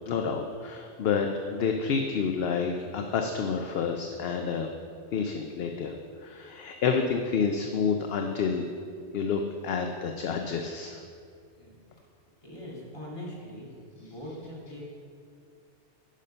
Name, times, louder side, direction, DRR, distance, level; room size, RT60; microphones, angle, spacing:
voice 1, 0.1-4.7 5.1-5.9 6.2-8.6 9.1-11.0, left 6 dB, 65° left, 4 dB, 0.8 m, -29 dB
voice 2, 12.4-13.7 14.0-14.8, left 1 dB, 25° left, -6 dB, 2.2 m, -41 dB
10.0 x 5.5 x 5.5 m, 2.3 s
omnidirectional pair, 1.2 m